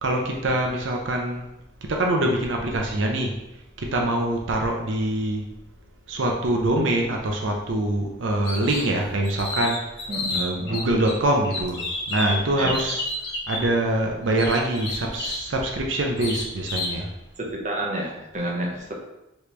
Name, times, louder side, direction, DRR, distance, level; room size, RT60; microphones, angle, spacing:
voice 1, 0.0-1.4 1.9-3.3 3.8-5.4 6.1-9.8 10.3-13.1 13.5-17.1, right 1 dB, 85° right, 1 dB, 0.6 m, -24 dB
sound 1, 8.4-8.9 9.2-11.1 11.4-13.6 14.4-15.5 16.2-17.0, left 2 dB, 60° left, 1.1 m, -30 dB
voice 2, 10.1-10.8 12.6-12.8 17.4-18.9, right 1 dB, 40° right, -2 dB, 0.9 m, -30 dB
5.0 x 3.2 x 3.2 m, 0.90 s
head